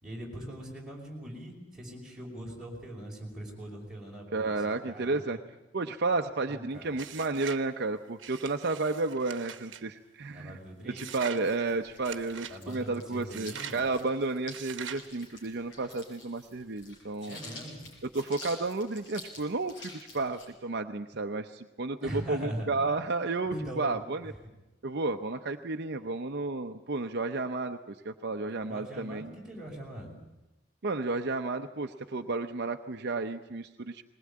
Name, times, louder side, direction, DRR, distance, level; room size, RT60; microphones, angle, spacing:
voice 1, 0.0-5.4 6.4-7.0 10.3-11.0 12.5-13.8 17.3-18.0 22.0-22.9 23.5-24.0 28.7-30.1, right 1 dB, 5° right, -3 dB, 5.3 m, -41 dB
voice 2, 4.3-5.4 5.7-10.6 10.8-17.4 18.0-24.3 24.8-29.3 30.8-34.0, right 3 dB, 60° right, 5 dB, 0.7 m, -32 dB
sound 1, 6.9-7.7 8.2-9.8 11.0-11.4 12.0-12.6 13.3-13.8 14.5-15.1, right 8 dB, 75° right, 1.1 m, -43 dB
sound 2, 11.3-20.5, left 2 dB, 70° left, 6.8 m, -49 dB
20.0 x 20.0 x 8.6 m, 1.0 s
head